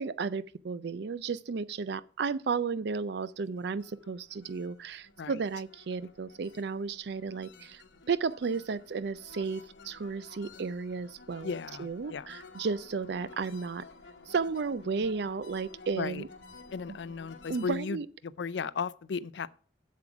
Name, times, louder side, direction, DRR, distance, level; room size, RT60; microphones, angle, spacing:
voice 1, 0.0-7.8 8.1-11.5 11.8-13.8 14.3-16.3 16.9-17.0 17.5-18.1, right 5 dB, 65° right, 0.5 m, -33 dB
sound 1, 3.3-17.8, left 3 dB, 85° left, 1.2 m, -53 dB
voice 2, 11.4-12.3 16.0-16.2 16.7-19.5, left 5 dB, 70° left, 0.4 m, -35 dB
7.8 x 7.4 x 6.0 m
head